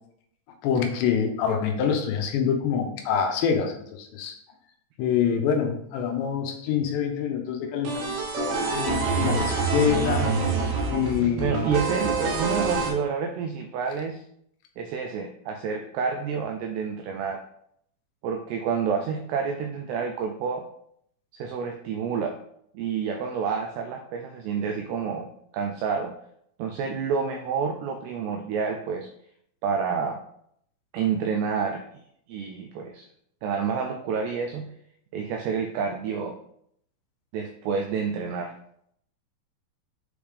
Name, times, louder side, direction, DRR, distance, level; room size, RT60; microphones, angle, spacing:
voice 1, 0.6-4.3 5.0-10.3 10.9-11.6, left 7 dB, 75° left, 3 dB, 2.9 m, -26 dB
sound 1, 7.8-12.9, right 4 dB, 65° right, 2.8 m, -26 dB
voice 2, 11.4-14.2 14.8-17.4 18.2-20.7 21.3-22.4 22.7-26.2 26.6-29.1 29.6-30.2 30.9-31.9 32.3-33.1 33.4-34.7 35.1-36.4 37.3-38.6, right 6 dB, 85° right, 4 dB, 2.3 m, -29 dB
8.0 x 3.4 x 5.0 m, 0.70 s
omnidirectional pair, 5.4 m